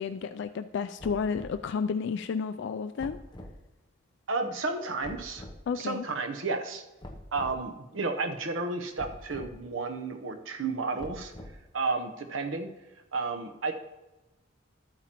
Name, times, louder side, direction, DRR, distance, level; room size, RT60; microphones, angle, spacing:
voice 1, 0.0-3.2 5.7-6.0, left 6 dB, 65° left, 10 dB, 0.3 m, -31 dB
sound 1, 1.0-1.6 3.0-3.6 5.0-5.6 7.0-7.6 9.0-9.6 11.0-11.7, left 1 dB, 25° left, 0.8 m, -44 dB
voice 2, 4.3-5.4 5.8-6.8 7.3-11.3 11.7-12.7 13.1-13.7, right 3 dB, 85° right, 4 dB, 0.9 m, -32 dB
13.0 x 8.9 x 3.0 m, 1.1 s
head